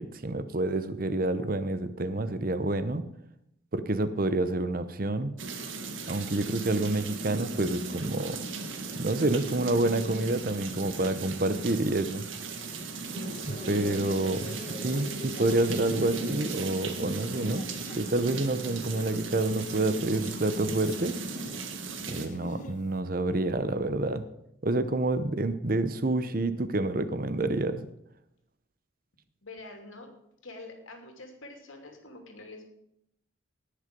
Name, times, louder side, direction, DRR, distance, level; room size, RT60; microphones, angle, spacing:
voice 1, 0.0-3.1 3.7-5.3 6.1-8.4 9.0-12.3 13.5-17.7 18.0-21.2 22.1-24.2 24.6-27.9, right 2 dB, 45° right, 12 dB, 0.8 m, -28 dB
sound 1, 5.4-22.3, right 3 dB, 75° right, 1.6 m, -37 dB
sound 2, 12.4-22.9, left 1 dB, 40° left, 1.1 m, -45 dB
voice 2, 13.7-14.4 29.4-30.1 30.4-32.6, left 2 dB, 85° left, 3 dB, 2.8 m, -46 dB
18.5 x 6.8 x 5.3 m, 0.78 s
head